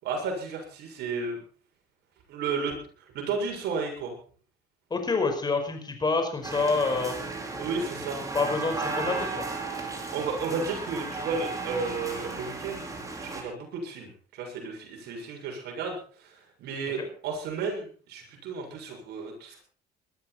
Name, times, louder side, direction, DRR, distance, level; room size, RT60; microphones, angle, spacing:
voice 1, 0.0-1.4 2.3-2.8 3.1-4.1 7.6-8.2 10.1-12.8 13.2-19.6, right 4 dB, 80° right, 2 dB, 7.2 m, -33 dB
voice 2, 4.9-7.2 8.3-9.5 17.0-17.1, left 3 dB, 25° left, 5 dB, 5.2 m, -27 dB
sound 1, 6.4-13.4, right 3 dB, 20° right, 4.7 m, -35 dB
20.5 x 13.0 x 4.5 m, 0.41 s
cardioid pair, 110°, 17 cm